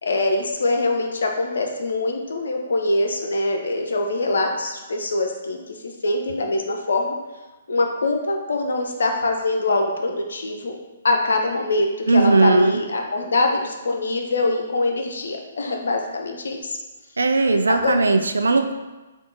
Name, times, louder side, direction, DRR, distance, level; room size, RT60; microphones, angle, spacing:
voice 1, 0.0-7.1 7.7-10.8 11.0-16.8 17.7-18.0, left 2 dB, 65° left, 3 dB, 0.5 m, -23 dB
voice 2, 12.1-12.8 17.2-18.7, right 3 dB, 75° right, 7 dB, 0.3 m, -18 dB
3.6 x 2.4 x 3.8 m, 1.1 s
figure-of-eight pair, 125°, 0 cm